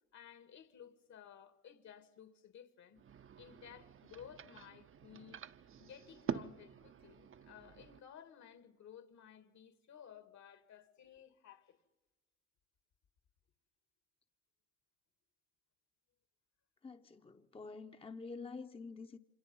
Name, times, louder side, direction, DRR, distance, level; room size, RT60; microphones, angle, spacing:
voice 1, 0.1-3.0 3.4-5.5 5.8-11.8, left 8 dB, 65° left, 2.0 m, -56 dB
sound 1, 2.9-8.0, right 8 dB, 45° right, 0.7 m, -47 dB
voice 2, 16.8-19.2, left 4 dB, 20° left, 0.8 m, -48 dB
27.5 x 25.5 x 5.5 m
cardioid pair, 90°, 30 cm